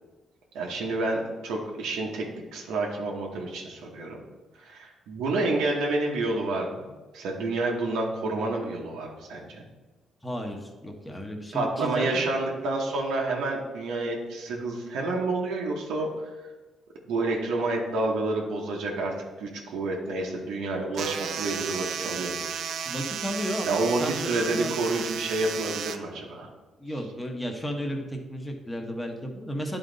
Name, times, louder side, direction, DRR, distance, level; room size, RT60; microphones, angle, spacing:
voice 1, 0.5-4.2 4.6-6.9 7.1-9.7 11.5-16.5 17.1-22.4 22.8-22.9 23.7-26.5, right 2 dB, 90° right, -2 dB, 1.1 m, -29 dB
voice 2, 10.2-12.3 22.9-24.7 26.4-26.5 26.8-29.8, equal, 10° left, 3 dB, 1.1 m, -33 dB
sound 1, 20.9-26.0, right 7 dB, 70° right, 0.5 m, -33 dB
9.9 x 4.0 x 3.9 m, 1.2 s
cardioid pair, 90°, 0 cm